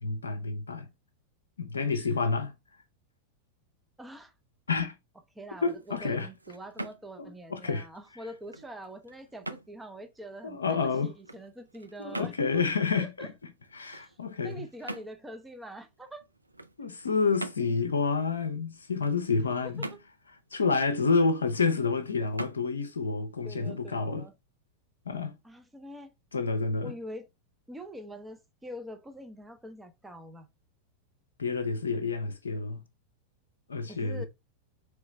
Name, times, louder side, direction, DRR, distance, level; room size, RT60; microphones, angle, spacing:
voice 1, 0.0-0.9 1.6-2.5 4.7-4.9 5.6-6.3 7.2-7.9 10.4-11.1 12.0-13.3 13.7-14.7 16.8-19.9 20.5-24.3 25.1-25.4 26.3-26.9 31.4-32.8 33.7-34.3, left 4 dB, 70° left, 0.5 m, -29 dB
voice 2, 4.0-4.3 5.4-12.6 13.0-13.3 13.9-14.2 14.4-16.2 19.6-20.0 23.4-24.3 25.4-26.1 26.8-27.3 27.7-30.5 33.9-34.3, right 1 dB, 10° right, 0.6 m, -44 dB
sound 1, 5.4-24.3, right 2 dB, 85° right, 0.3 m, -46 dB
3.9 x 3.2 x 3.1 m
figure-of-eight pair, 90°, 0 cm